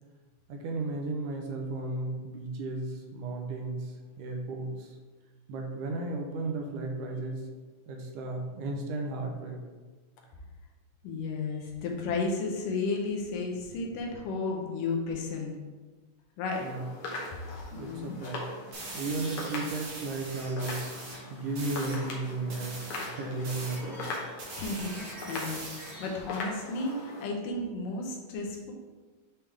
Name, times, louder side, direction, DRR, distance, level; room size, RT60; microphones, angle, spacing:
voice 1, 0.5-5.0 5.5-7.5 7.9-9.6 16.6-16.9 17.8-18.5 18.9-20.9 21.3-24.1, right 2 dB, 80° right, 1 dB, 2.3 m, -34 dB
voice 2, 11.0-15.5 16.4-16.7 17.7-18.2 24.5-28.7, left 3 dB, 90° left, 1 dB, 2.6 m, -33 dB
sound 1, 16.5-27.3, left 2 dB, 65° left, 1.5 m, -41 dB
sound 2, 18.7-21.2 21.6-22.0 22.5-26.2, right 2 dB, 55° right, 2.5 m, -42 dB
8.7 x 3.4 x 3.5 m, 1.3 s
omnidirectional pair, 3.7 m